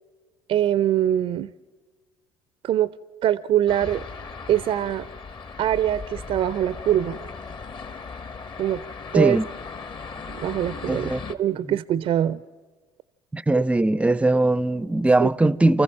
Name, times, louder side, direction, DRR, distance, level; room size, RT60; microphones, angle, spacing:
voice 1, 0.5-1.5 2.6-2.9 3.2-4.0 4.5-5.1 5.6-7.2 8.6-8.8 9.1-9.4 10.3-12.4 15.2-15.3, right 11 dB, 50° right, 0.5 m, -23 dB
sound 1, 3.7-11.3, left 5 dB, 40° left, 1.4 m, -38 dB
voice 2, 9.1-9.5 10.9-11.2 11.5-11.8 13.3-15.8, right 2 dB, 10° right, 0.6 m, -20 dB
28.5 x 14.5 x 7.4 m
hypercardioid pair, 65°, 12 cm